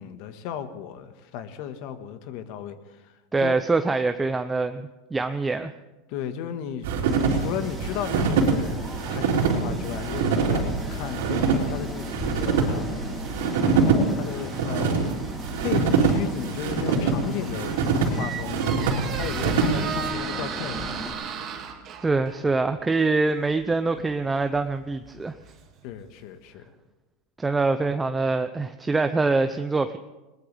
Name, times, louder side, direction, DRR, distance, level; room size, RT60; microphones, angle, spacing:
voice 1, 0.0-3.1 3.4-3.6 6.1-6.9 7.3-8.8 9.1-12.1 12.3-13.9 14.1-15.0 15.6-17.8 18.1-18.6 19.1-21.0 25.8-26.7, left 9 dB, 55° left, 9 dB, 1.5 m, -34 dB
voice 2, 3.3-5.7 22.0-25.3 27.4-30.0, right 3 dB, 10° right, 8 dB, 0.6 m, -24 dB
sound 1, 6.8-20.1, right 5 dB, 85° right, 3.9 m, -24 dB
sound 2, 7.1-21.1, equal, 5° left, 3.0 m, -37 dB
Squeak, 17.4-26.1, right 7 dB, 35° right, 2.3 m, -36 dB
21.0 x 19.5 x 3.5 m, 1.1 s
supercardioid pair, 145°, 0 cm